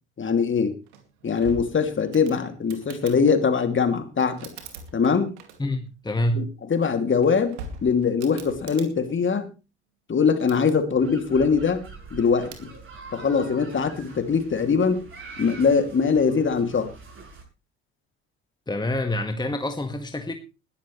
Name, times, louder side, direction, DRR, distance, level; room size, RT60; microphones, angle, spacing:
voice 1, 0.2-0.8 1.2-4.5 4.9-5.3 6.3-6.4 6.7-9.5 10.1-11.8 12.1-12.7 13.1-15.0 15.4-16.9, left 5 dB, 35° left, 2.6 m, -22 dB
sound 1, 0.9-3.2 4.2-5.9 7.0-8.9 10.2-10.7 12.4-12.7, right 3 dB, 75° right, 2.5 m, -43 dB
voice 2, 5.6-6.5 18.7-20.3, left 1 dB, 10° left, 1.6 m, -27 dB
sound 2, 11.0-17.4, right 4 dB, 35° right, 7.3 m, -44 dB
20.5 x 11.5 x 3.2 m
hypercardioid pair, 60°, 34 cm